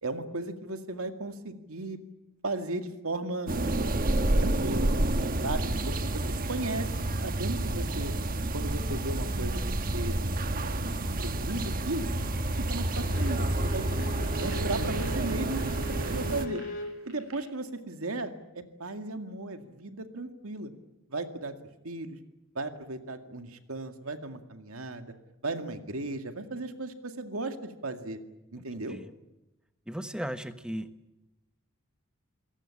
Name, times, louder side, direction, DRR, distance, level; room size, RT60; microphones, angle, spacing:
voice 1, 0.0-2.0 2.4-3.5 4.4-4.9 5.4-6.2 6.5-6.9 7.2-8.1 8.5-10.8 11.2-12.1 12.7-14.0 14.4-16.6 17.1-20.7 21.1-21.6 21.8-22.2 22.6-25.1 25.4-28.2 28.5-29.0, right 2 dB, 90° right, 7 dB, 2.2 m, -36 dB
sound 1, 3.5-16.5, right 1 dB, 45° right, 1.3 m, -29 dB
voice 2, 5.2-5.9 28.9-29.1 29.9-30.9, equal, 5° right, 10 dB, 1.2 m, -37 dB
sound 2, 12.4-17.3, right 2 dB, 70° right, 7.7 m, -50 dB
Bowed string instrument, 12.9-17.0, equal, 40° left, 3.0 m, -40 dB
27.5 x 18.0 x 8.5 m, 0.97 s
head